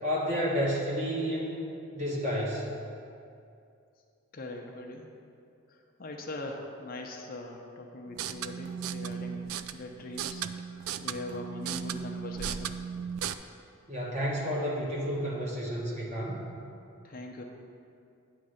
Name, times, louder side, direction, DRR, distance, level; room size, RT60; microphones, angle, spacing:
voice 1, 0.0-1.6 1.9-2.6 13.9-16.4, equal, 35° right, -4 dB, 1.3 m, -30 dB
voice 2, 4.3-5.1 5.7-12.8 17.0-17.4, left 2 dB, 45° left, 2 dB, 0.6 m, -41 dB
sound 1, 8.1-13.3, right 8 dB, 80° right, 0.3 m, -36 dB
9.5 x 3.2 x 6.4 m, 2.5 s
head